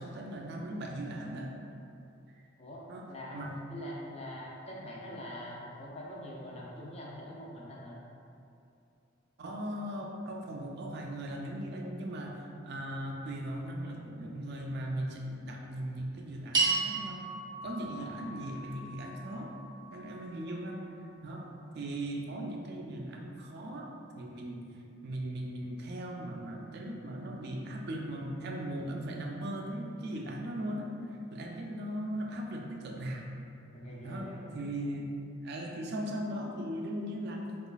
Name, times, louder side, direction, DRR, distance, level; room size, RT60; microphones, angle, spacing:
voice 1, 0.0-1.5 2.9-3.1 3.3-3.6 9.4-17.3 17.6-19.5 19.9-20.9 21.2-21.5 21.7-24.7 25.0-30.9 31.3-33.3 34.0-35.1 35.4-37.5, right 1 dB, 55° right, 1 dB, 0.4 m, -38 dB
voice 2, 3.1-8.0 17.9-18.2 33.7-34.4, left 1 dB, 30° left, -5 dB, 0.5 m, -44 dB
sound 1, 16.5-21.0, right 3 dB, 20° right, 0.7 m, -35 dB
3.9 x 2.3 x 2.3 m, 2.6 s
head